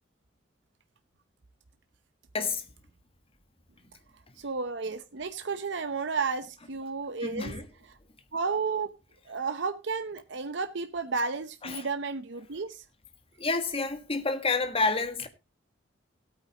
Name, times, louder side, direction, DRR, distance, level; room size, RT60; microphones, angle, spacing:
voice 1, 4.4-7.5 8.3-8.9 9.3-12.8, right 4 dB, 70° right, 0.8 m, -32 dB
voice 2, 7.2-7.7 11.6-11.8 13.4-15.3, left 3 dB, 30° left, 1.6 m, -29 dB
17.0 x 8.9 x 2.9 m
head